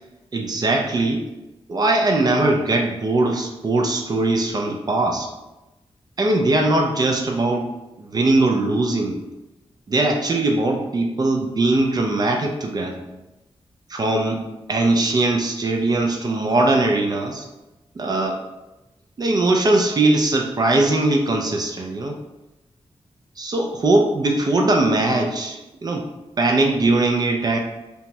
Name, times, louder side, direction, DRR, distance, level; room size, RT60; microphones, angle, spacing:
voice 1, 0.3-1.2 1.7-5.3 6.2-7.7 8.0-9.2 9.9-13.0 13.9-17.4 18.0-18.4 19.2-22.2 23.4-26.1 26.4-27.6, right 2 dB, 40° right, 1 dB, 0.3 m, -20 dB
2.9 x 2.2 x 2.6 m, 0.99 s
wide cardioid pair, 120°, 11 cm